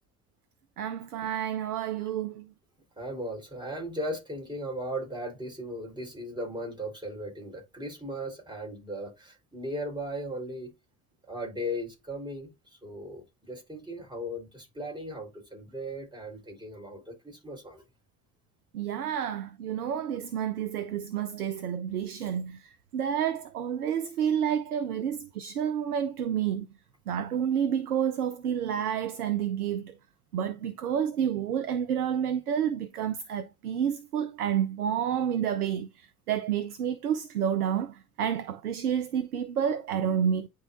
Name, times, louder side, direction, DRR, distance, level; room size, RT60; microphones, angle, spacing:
voice 1, 0.8-2.4 18.7-22.6 22.9-26.7 27.1-29.9 30.3-35.9 36.3-40.5, right 9 dB, 90° right, 0.6 m, -29 dB
voice 2, 3.0-10.7 11.3-12.5 12.8-17.8, equal, 10° right, 4.0 m, -37 dB
10.0 x 3.9 x 2.5 m
hypercardioid pair, 60°, 44 cm